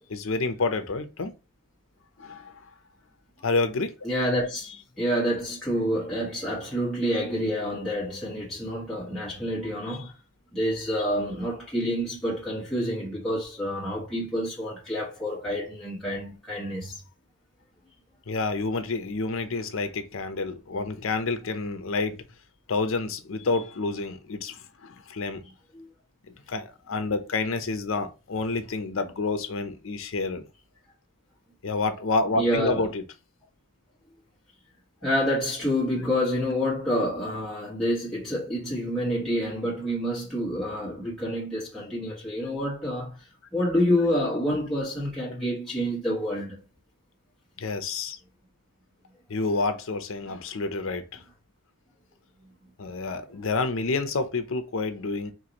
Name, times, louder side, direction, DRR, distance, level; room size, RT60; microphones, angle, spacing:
voice 1, 0.1-1.3 2.2-2.5 3.4-3.9 18.3-22.2 22.7-25.4 26.5-30.5 31.6-33.0 47.6-48.2 49.3-51.2 52.8-55.3, left 3 dB, 60° left, 0.6 m, -29 dB
voice 2, 4.0-4.7 5.0-10.1 10.5-17.0 25.7-25.9 32.3-32.8 35.0-46.6, equal, ahead, 1.5 m, -28 dB
4.6 x 2.5 x 2.9 m
head